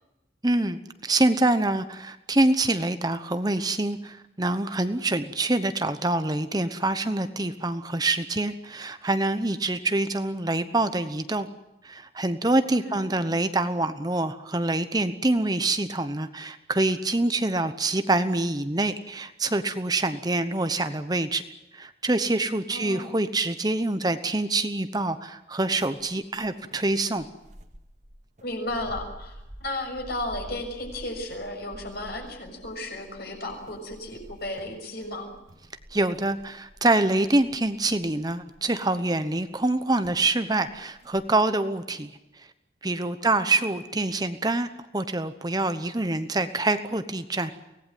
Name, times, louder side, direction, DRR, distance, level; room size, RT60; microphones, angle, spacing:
voice 1, 0.4-11.5 11.8-21.4 21.7-27.2 35.9-42.1 42.4-42.5 42.8-44.7 44.9-47.5, right 2 dB, 20° right, 10 dB, 1.0 m, -25 dB
voice 2, 12.8-13.2 22.7-23.1 28.4-35.3 43.2-43.6, left 1 dB, 55° left, 3 dB, 6.6 m, -34 dB
sound 1, 25.8-38.9 39.6-39.8 40.0-40.3 40.6-41.3, equal, 40° right, 2.1 m, -48 dB
24.5 x 18.5 x 9.3 m, 0.97 s
head